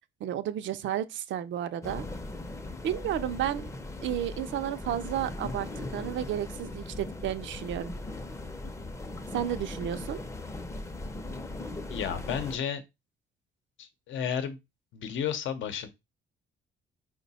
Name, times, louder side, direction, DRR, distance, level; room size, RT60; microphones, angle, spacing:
voice 1, 0.2-2.0 2.8-3.7 4.0-7.9 9.3-10.2, right 11 dB, 70° right, 0.5 m, -32 dB
sound 1, 1.8-12.6, left 2 dB, 15° left, 0.5 m, -39 dB
voice 2, 11.9-12.8 13.8-14.6 14.9-15.9, left 8 dB, 75° left, 0.7 m, -32 dB
4.7 x 2.2 x 4.0 m
cardioid pair, 90°, 20 cm